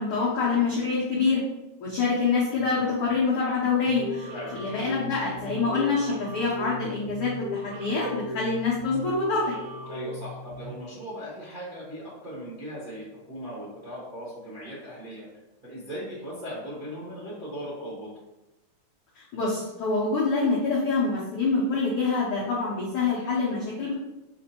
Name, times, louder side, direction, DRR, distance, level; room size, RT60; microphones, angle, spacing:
voice 1, 0.0-1.4 1.8-4.3 4.6-9.4 19.1-23.9, left 4 dB, 80° left, -6 dB, 1.2 m, -26 dB
sound 1, 3.9-10.8, left 1 dB, 85° right, 2.2 m, -37 dB
voice 2, 9.9-15.2 15.6-18.1, equal, 40° right, -9 dB, 0.7 m, -38 dB
6.8 x 2.6 x 2.8 m, 0.98 s
omnidirectional pair, 3.6 m